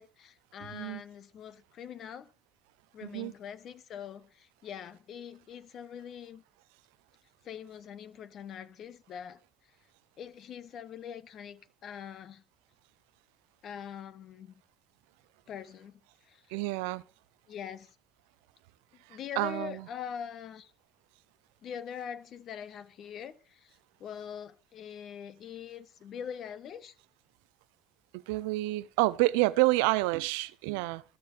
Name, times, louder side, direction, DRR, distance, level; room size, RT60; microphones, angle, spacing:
voice 1, 0.0-2.3 2.9-6.4 7.4-9.4 10.2-12.4 13.6-14.5 15.5-16.5 17.5-17.9 19.1-20.7 21.6-26.9, left 8 dB, 55° left, 1.2 m, -43 dB
voice 2, 3.0-3.3 16.5-17.0 19.1-19.9 28.1-31.0, right 20 dB, 90° right, 0.5 m, -29 dB
13.0 x 4.7 x 8.5 m
supercardioid pair, 95°, 0 cm